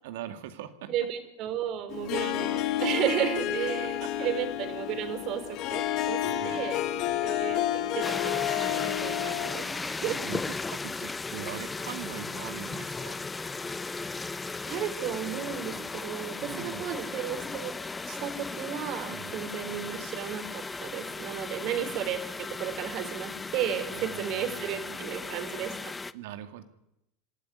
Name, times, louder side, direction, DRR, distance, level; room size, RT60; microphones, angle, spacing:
voice 1, 0.0-1.1 3.8-4.1 6.2-7.5 10.0-13.2 16.4-16.9 19.1-19.4 23.9-26.6, right 11 dB, 75° right, 9 dB, 2.3 m, -43 dB
voice 2, 0.9-6.8 7.2-10.2 14.2-14.3 14.6-17.7 18.1-25.9, right 9 dB, 55° right, 9 dB, 4.1 m, -34 dB
Harp, 1.9-9.8, left 12 dB, 55° left, 1.7 m, -30 dB
sound 1, 8.0-26.1, left 3 dB, 15° left, 0.8 m, -36 dB
26.0 x 13.5 x 9.5 m, 0.83 s
hypercardioid pair, 100°, 0 cm